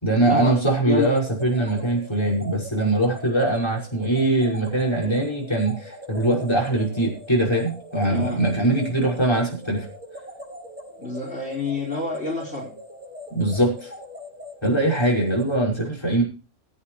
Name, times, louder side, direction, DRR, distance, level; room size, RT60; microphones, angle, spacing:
voice 1, 0.0-9.9 13.3-13.9 14.6-16.2, right 1 dB, 20° left, -3 dB, 5.9 m, -22 dB
sound 1, 1.0-15.6, equal, 10° right, 5.5 m, -41 dB
voice 2, 8.1-8.4 11.0-12.7, left 3 dB, 55° left, -2 dB, 4.9 m, -28 dB
22.0 x 9.0 x 3.2 m, 0.32 s
omnidirectional pair, 1.3 m